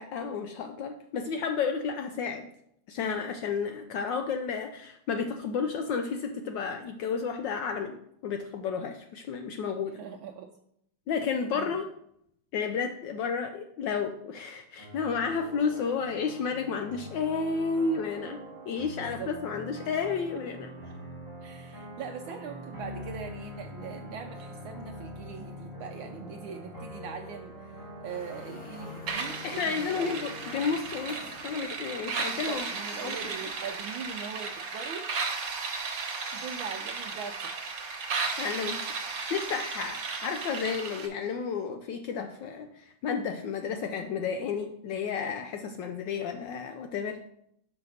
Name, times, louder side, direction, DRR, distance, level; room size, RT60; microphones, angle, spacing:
voice 1, 0.0-2.4 2.9-8.0 8.2-10.0 11.1-11.9 12.5-20.7 29.4-31.2 31.4-32.7 33.0-33.2 38.4-47.2, left 5 dB, 75° left, 6 dB, 1.1 m, -32 dB
voice 2, 9.8-10.5 11.5-11.7 19.0-19.3 19.6-19.7 20.8-20.9 21.4-30.3 32.2-35.1 36.3-37.7, right 7 dB, 75° right, 3 dB, 1.3 m, -41 dB
sound 1, 14.8-30.7, left 1 dB, 15° left, 1.8 m, -44 dB
sound 2, 28.1-33.3, equal, 35° left, 2.6 m, -51 dB
sound 3, 29.1-41.1, right 4 dB, 60° right, 1.5 m, -35 dB
5.7 x 5.6 x 5.5 m, 0.74 s
omnidirectional pair, 2.4 m